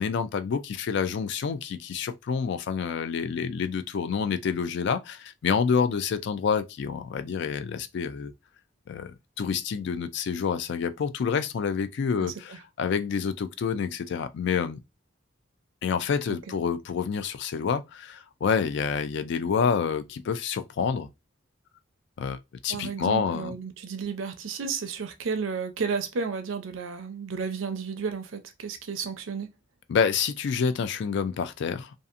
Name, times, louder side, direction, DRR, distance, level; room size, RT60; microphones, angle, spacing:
voice 1, 0.0-8.3 8.9-14.8 15.8-21.1 22.2-23.5 29.9-31.9, left 6 dB, 65° left, 0.3 m, -28 dB
voice 2, 22.7-29.5, right 5 dB, 80° right, 0.5 m, -32 dB
2.6 x 2.4 x 2.5 m
head